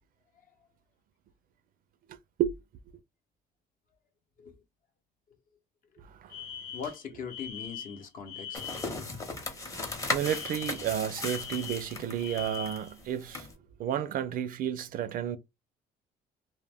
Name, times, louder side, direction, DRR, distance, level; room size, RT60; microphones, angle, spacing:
voice 1, 6.0-6.3 10.1-13.5 13.8-15.4, right 10 dB, 55° right, 0.4 m, -32 dB
Alarm, 6.3-9.0 10.2-13.0, left 8 dB, 90° left, 0.7 m, -42 dB
voice 2, 6.7-8.7, left 6 dB, 55° left, 0.8 m, -40 dB
sound 1, 8.5-13.5, left 3 dB, 20° left, 0.7 m, -37 dB
2.2 x 2.1 x 3.3 m
cardioid pair, 110°, 17 cm